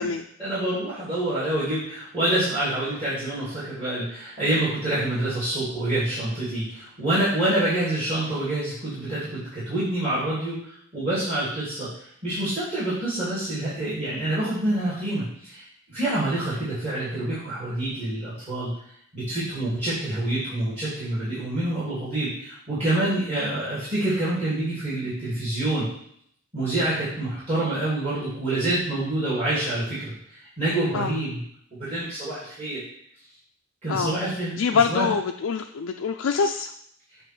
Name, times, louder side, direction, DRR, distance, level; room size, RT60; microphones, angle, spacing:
voice 1, 0.4-10.6 10.9-11.9 12.2-15.6 15.9-18.7 19.1-25.9 26.5-31.4 31.7-32.8 33.8-35.1, right 1 dB, 30° right, -12 dB, 2.7 m, -27 dB
voice 2, 34.6-36.7, left 5 dB, 85° left, 4 dB, 0.4 m, -24 dB
7.8 x 3.0 x 6.1 m, 0.67 s
head